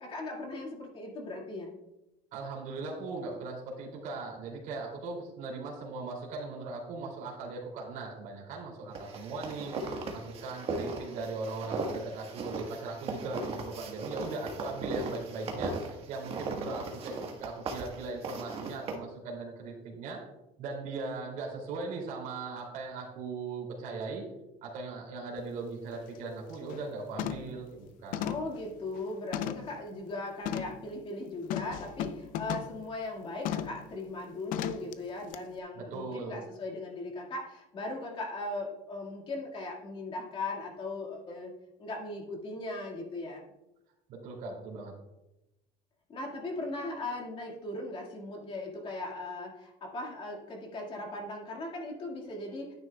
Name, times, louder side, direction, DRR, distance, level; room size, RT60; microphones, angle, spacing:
voice 1, 0.0-1.7 28.2-41.5 41.8-43.4 46.1-52.7, left 2 dB, 35° left, 0 dB, 1.9 m, -38 dB
voice 2, 2.3-17.1 17.4-20.2 20.6-24.2 24.6-28.3 35.8-36.4 44.1-44.9, right 3 dB, 60° right, -2 dB, 2.7 m, -39 dB
sound 1, 8.9-18.9, right 3 dB, 40° right, 1.4 m, -37 dB
sound 2, 25.4-25.5 25.9-26.2 26.5-26.9 27.2-27.6 28.1-29.8 30.4-30.8 31.5-32.8 33.4-33.8 34.5-34.9 35.3-35.4, left 10 dB, 65° left, 0.5 m, -36 dB
11.0 x 9.5 x 2.3 m, 0.95 s
cardioid pair, 140°, 15 cm